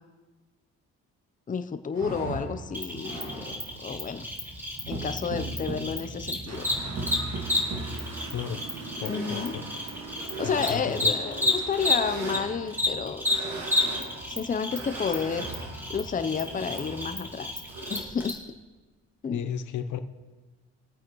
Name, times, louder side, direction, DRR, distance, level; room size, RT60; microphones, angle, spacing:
voice 1, 1.5-3.5 3.8-4.2 4.9-6.7 9.1-9.5 10.4-13.4 13.8-13.9 14.3-15.5 15.9-17.5 17.9-18.4 19.2-19.4, left 6 dB, 25° left, 9 dB, 0.6 m, -31 dB
sound 1, 1.9-18.0, right 2 dB, 70° right, 2.2 m, -39 dB
Cricket, 2.7-12.4 12.7-18.3, left 2 dB, 5° right, 2.6 m, -31 dB
sound 2, 6.5-12.0, right 4 dB, 55° right, 1.3 m, -42 dB
voice 2, 8.3-8.6 9.0-9.7 10.4-11.1 19.3-20.0, left 8 dB, 75° left, 10 dB, 0.9 m, -34 dB
21.5 x 8.6 x 3.1 m, 1.3 s
cardioid pair, 90°, 30 cm